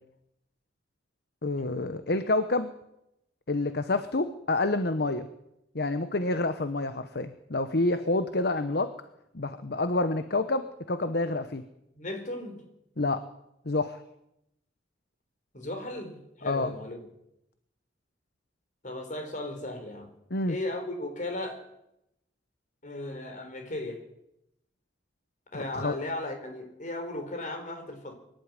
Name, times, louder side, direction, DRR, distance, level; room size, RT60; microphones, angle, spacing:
voice 1, 1.4-2.7 3.5-5.3 5.7-8.9 9.3-11.6 13.0-13.2 13.6-14.0 16.5-16.7 20.3-20.6 25.5-26.0, left 2 dB, 60° left, 10 dB, 1.1 m, -28 dB
voice 2, 12.0-12.6 15.5-17.1 18.8-20.1 20.5-21.7 22.8-24.0 25.5-28.1, left 1 dB, 45° left, 5 dB, 4.4 m, -36 dB
23.5 x 12.0 x 9.8 m, 0.84 s
head